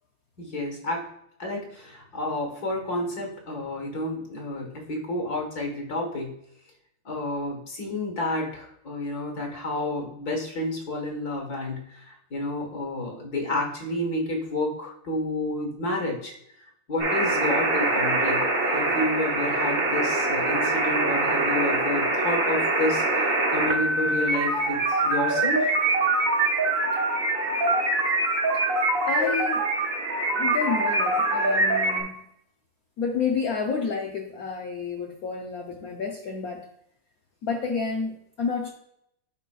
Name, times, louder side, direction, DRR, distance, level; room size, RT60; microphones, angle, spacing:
voice 1, 0.4-1.1 1.4-6.3 7.0-16.3 16.9-25.7, left 2 dB, 45° left, 1 dB, 1.8 m, -30 dB
sound 1, 17.0-32.0, right 2 dB, 45° right, 1.4 m, -24 dB
voice 2, 29.1-29.7 30.4-32.2 33.0-36.7 37.4-38.7, left 5 dB, 75° left, 1 dB, 0.8 m, -30 dB
11.0 x 4.1 x 2.3 m, 0.75 s
omnidirectional pair, 2.4 m